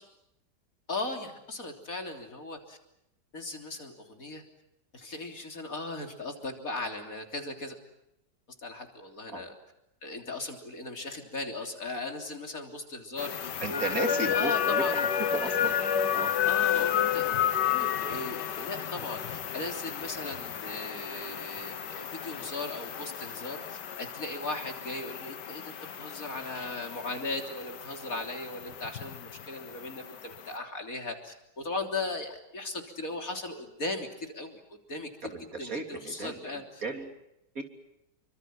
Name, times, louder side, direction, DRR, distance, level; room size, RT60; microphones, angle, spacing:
voice 1, 0.9-2.8 3.3-4.4 4.9-7.8 8.6-9.6 10.0-15.0 16.5-17.3 17.7-34.6 34.9-35.1 35.6-36.6, left 2 dB, 50° left, 4 dB, 3.8 m, -37 dB
sound 1, 13.2-30.6, left 9 dB, 75° left, 2.0 m, -32 dB
voice 2, 13.6-15.8 16.1-16.3 17.2-17.3 35.2-37.2 37.6-37.7, right 3 dB, 50° right, 4 dB, 3.6 m, -35 dB
28.5 x 25.0 x 7.7 m, 0.86 s
omnidirectional pair, 1.9 m